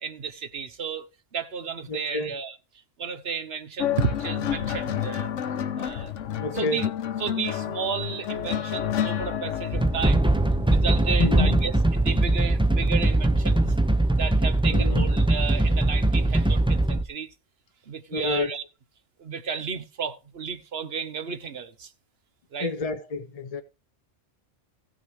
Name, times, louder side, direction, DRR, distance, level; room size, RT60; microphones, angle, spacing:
voice 1, 0.0-2.6 3.0-5.3 5.8-6.1 6.5-6.9 7.2-10.3 10.7-13.7 14.1-17.3 17.9-18.6 19.2-21.9 22.5-22.7, right 6 dB, 55° right, 1.2 m, -32 dB
voice 2, 1.9-2.3 6.4-6.9 11.2-11.6 14.7-15.1 18.1-18.5 22.6-23.6, left 3 dB, 40° left, 0.6 m, -29 dB
sound 1, 3.8-12.5 13.5-13.8, left 10 dB, 80° left, 1.1 m, -31 dB
sound 2, 9.7-17.0, right 1 dB, 5° right, 0.4 m, -21 dB
15.5 x 6.2 x 4.8 m
omnidirectional pair, 1.3 m